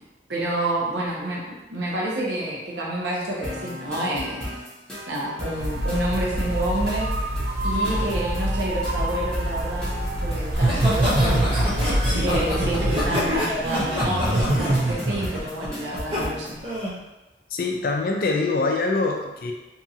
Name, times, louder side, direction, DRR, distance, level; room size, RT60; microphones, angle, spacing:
voice 1, 0.3-4.5 5.1-7.1 7.6-16.6, right 1 dB, 75° right, -4 dB, 0.8 m, -29 dB
sound 1, 3.4-16.6, left 1 dB, 5° left, 0.7 m, -36 dB
sound 2, 5.6-13.1, right 1 dB, 60° right, 0.4 m, -26 dB
Laughter, 10.5-16.2 16.6-16.9, right 1 dB, 35° right, 0.9 m, -24 dB
voice 2, 17.5-19.5, left 3 dB, 55° left, 1 dB, 0.4 m, -24 dB
2.7 x 2.4 x 2.7 m, 1.0 s
head